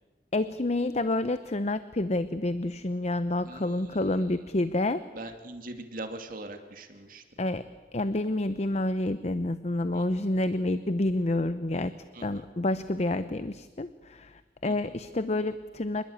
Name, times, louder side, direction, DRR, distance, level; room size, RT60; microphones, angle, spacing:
voice 1, 0.3-5.3 7.4-7.7 7.9-11.9 12.2-16.0, left 2 dB, 40° left, 12 dB, 0.8 m, -29 dB
voice 2, 3.4-4.3 5.1-7.2 9.9-10.0 12.1-12.4 14.6-14.9, right 2 dB, 50° right, 6 dB, 2.4 m, -42 dB
26.0 x 21.0 x 8.7 m, 1.3 s
head